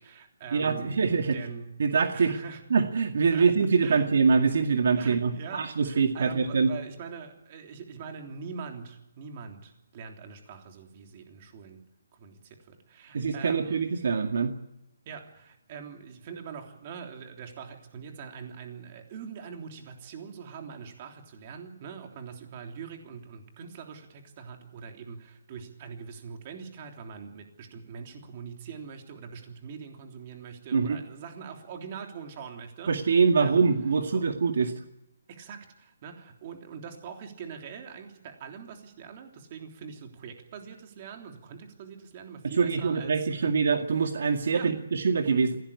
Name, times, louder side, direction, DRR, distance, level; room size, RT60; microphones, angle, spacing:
voice 1, 0.0-1.8 2.1-2.6 3.3-3.5 3.8-4.1 4.9-11.8 12.1-13.8 15.1-33.7 34.1-34.3 34.7-34.8 35.3-43.7 44.5-44.7, right 6 dB, 30° right, 4 dB, 3.3 m, -43 dB
voice 2, 0.5-1.4 1.8-2.3 2.7-6.7 13.1-14.5 30.7-31.0 32.9-34.7 42.4-45.6, right 5 dB, 55° right, 5 dB, 2.0 m, -24 dB
25.5 x 17.0 x 8.4 m, 0.87 s
hypercardioid pair, 170°, 0 cm